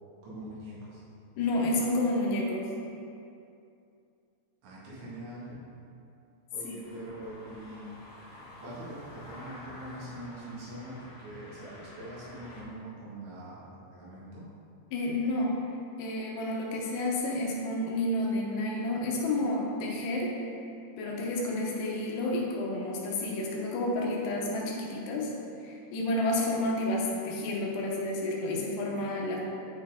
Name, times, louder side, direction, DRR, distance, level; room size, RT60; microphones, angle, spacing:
voice 1, 0.2-1.0 4.6-5.6 6.5-8.0 8.6-14.5, right 1 dB, 85° right, -9 dB, 4.0 m, -43 dB
voice 2, 1.4-2.7 6.6-6.7 14.9-15.6 16.0-20.3 21.0-25.3 25.6-29.4, left 1 dB, 80° left, -2 dB, 3.0 m, -30 dB
sound 1, 6.8-12.6, left 1 dB, 60° left, 3.0 m, -49 dB
9.1 x 4.4 x 3.7 m, 2.6 s
omnidirectional pair, 4.8 m